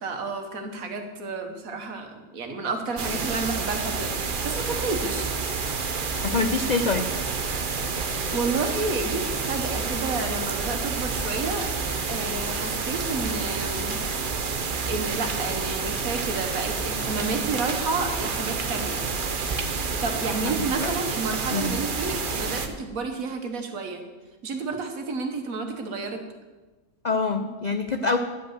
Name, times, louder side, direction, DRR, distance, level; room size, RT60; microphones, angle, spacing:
voice 1, 0.0-5.3 8.3-11.7 12.1-14.0 14.9-19.0 19.8-24.0 24.4-26.2, right 3 dB, 70° right, 5 dB, 1.6 m, -31 dB
sound 1, 3.0-22.7, right 4 dB, 45° right, 0.8 m, -29 dB
sound 2, 4.9-14.2, left 2 dB, 70° left, 2.7 m, -47 dB
voice 2, 6.2-7.0 20.8-20.9 21.5-21.8 27.0-28.2, left 4 dB, 55° left, 6 dB, 0.4 m, -25 dB
11.0 x 5.3 x 8.0 m, 1.2 s
omnidirectional pair, 1.5 m